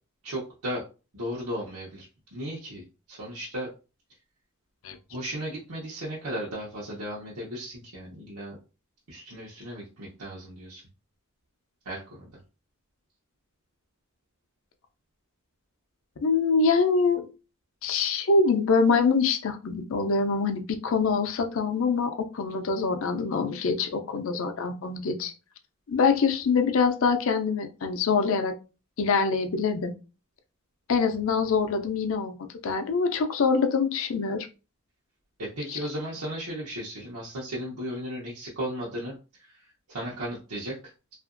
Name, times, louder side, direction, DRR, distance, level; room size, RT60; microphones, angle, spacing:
voice 1, 0.2-0.8 1.1-3.7 5.1-8.6 9.1-10.8 11.8-12.3 35.4-41.1, equal, 90° right, -6 dB, 0.8 m, -36 dB
voice 2, 16.2-17.3 17.8-25.3 25.9-28.5 29.0-29.9 30.9-32.4 32.6-34.5 35.7-35.8, left 4 dB, 60° left, 7 dB, 0.4 m, -24 dB
2.8 x 2.4 x 2.5 m, 0.32 s
head